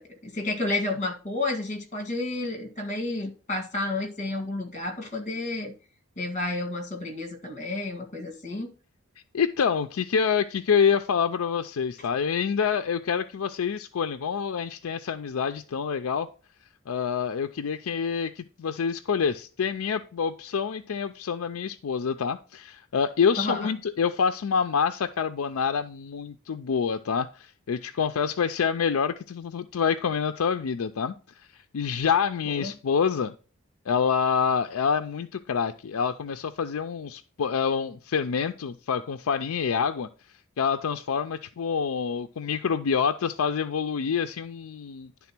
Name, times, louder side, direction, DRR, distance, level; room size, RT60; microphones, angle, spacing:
voice 1, 0.0-5.7 6.2-8.7 23.4-23.7 32.5-32.7, left 2 dB, 35° left, 1.8 m, -31 dB
voice 2, 9.3-16.3 16.9-31.5 31.7-33.3 33.9-40.1 40.6-45.1, left 6 dB, 85° left, 0.4 m, -27 dB
10.5 x 3.6 x 5.9 m
head